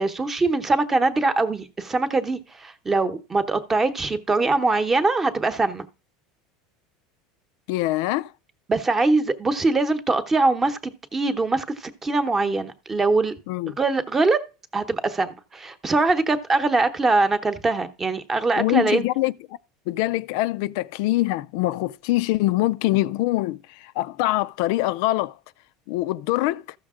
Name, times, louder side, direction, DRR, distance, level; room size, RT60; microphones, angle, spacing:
voice 1, 0.0-5.9 8.7-13.3 13.7-14.4 14.7-19.1, right 3 dB, 15° right, 0.9 m, -22 dB
voice 2, 7.7-8.3 13.5-13.8 18.6-19.3 19.9-25.4 25.9-26.6, left 17 dB, 65° left, 0.4 m, -24 dB
14.0 x 6.4 x 3.7 m
supercardioid pair, 155°, 2 cm